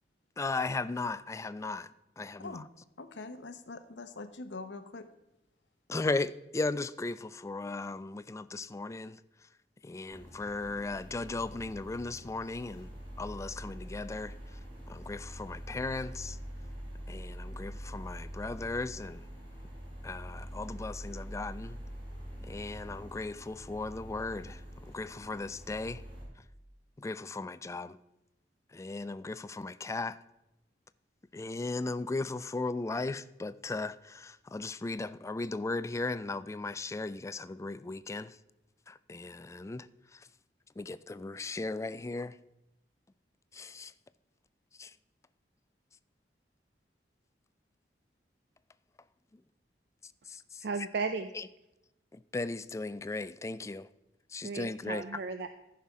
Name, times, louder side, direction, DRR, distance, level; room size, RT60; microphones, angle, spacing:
voice 1, 0.4-2.6 5.9-9.2 9.8-12.9 13.2-14.3 14.9-16.4 17.1-19.2 20.0-21.8 22.5-26.0 27.0-28.0 28.7-30.2 31.3-38.4 38.9-39.9 40.8-42.4 43.5-43.9 44.8-44.9 50.3-50.6 51.4-51.5 52.1-53.9 54.3-55.0, left 3 dB, 15° left, 0.3 m, -37 dB
voice 2, 3.0-5.1, left 3 dB, 85° left, 0.8 m, -43 dB
sound 1, 10.1-26.2, equal, 30° right, 4.3 m, -45 dB
voice 3, 50.6-51.3 54.4-55.5, right 4 dB, 65° right, 0.5 m, -35 dB
14.5 x 5.7 x 4.8 m
head